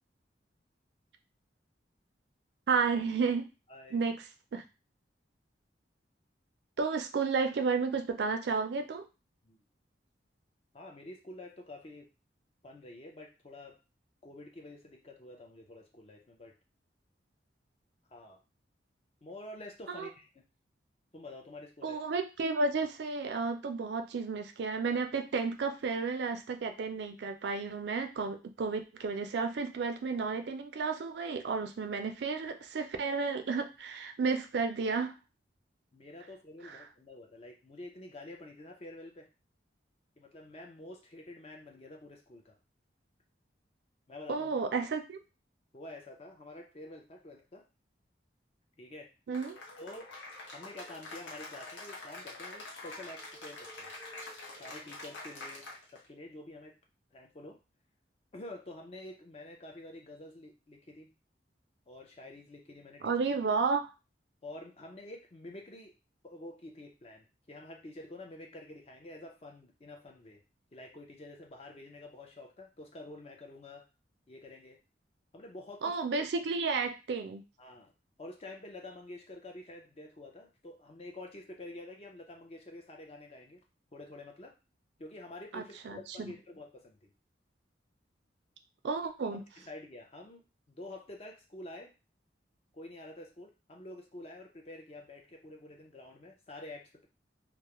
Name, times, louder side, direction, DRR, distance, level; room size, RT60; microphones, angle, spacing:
voice 1, 2.7-3.5 3.9-4.2 4.5-4.6 6.8-9.1 19.9-20.1 21.8-35.1 36.6-36.8 44.3-45.2 49.3-49.6 63.0-63.9 75.8-77.4 85.5-86.3 88.8-89.4, right 4 dB, 65° right, 6 dB, 0.4 m, -32 dB
voice 2, 3.7-4.0 9.4-9.6 10.7-12.1 12.6-13.8 14.2-16.5 18.1-18.4 19.2-20.3 21.1-22.0 35.9-39.3 40.2-42.6 44.1-44.5 45.7-47.6 48.8-49.1 49.8-50.1 50.5-53.9 54.6-55.7 55.9-56.7 57.1-57.6 58.3-61.1 61.9-63.1 64.4-65.9 66.2-70.4 70.7-73.9 74.3-74.8 75.3-76.3 77.6-77.9 78.2-83.6 83.9-84.5 85.0-87.1 89.2-90.4 90.7-91.9 92.7-97.1, left 2 dB, 35° left, 2 dB, 0.5 m, -48 dB
Cheering / Applause, 49.3-56.1, left 2 dB, 85° left, 0.8 m, -46 dB
2.3 x 2.0 x 2.9 m, 0.29 s
head